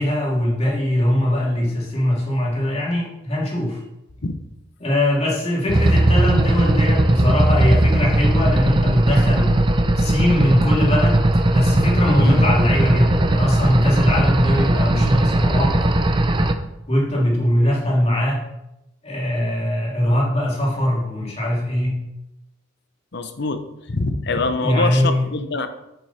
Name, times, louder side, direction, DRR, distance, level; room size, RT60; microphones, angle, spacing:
voice 1, 0.0-3.8 4.8-9.7 9.9-15.8 16.9-18.4 19.0-22.0 24.6-25.3, left 1 dB, 35° left, -4 dB, 2.9 m, -21 dB
sound 1, 5.7-16.5, right 1 dB, 25° right, 0.6 m, -18 dB
voice 2, 12.1-12.4 23.1-23.6 23.9-25.7, left 3 dB, 60° left, 9 dB, 0.8 m, -24 dB
8.3 x 7.7 x 4.3 m, 0.92 s
head